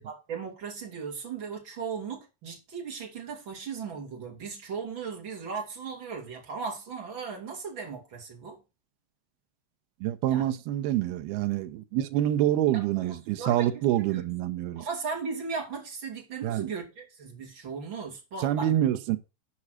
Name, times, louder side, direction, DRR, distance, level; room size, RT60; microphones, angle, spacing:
voice 1, 0.0-8.6 10.3-10.5 12.7-13.7 14.0-14.2 14.8-18.7, right 5 dB, 35° right, 2.2 m, -37 dB
voice 2, 10.0-14.9 16.4-16.7 18.4-19.2, right 12 dB, 75° right, 2.5 m, -26 dB
8.5 x 5.5 x 6.3 m
omnidirectional pair, 5.0 m